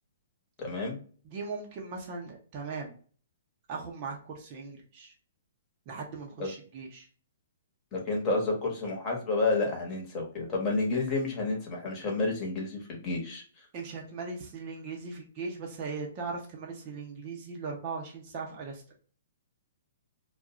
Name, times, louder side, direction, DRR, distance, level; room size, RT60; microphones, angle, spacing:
voice 1, 0.6-1.0 6.4-6.5 7.9-13.4, left 3 dB, 25° left, -1 dB, 1.1 m, -30 dB
voice 2, 1.2-2.9 3.7-5.1 5.9-7.1 13.7-18.8, right 4 dB, 35° right, -1 dB, 0.7 m, -39 dB
2.4 x 2.2 x 2.9 m, 0.43 s
hypercardioid pair, 135°, 0 cm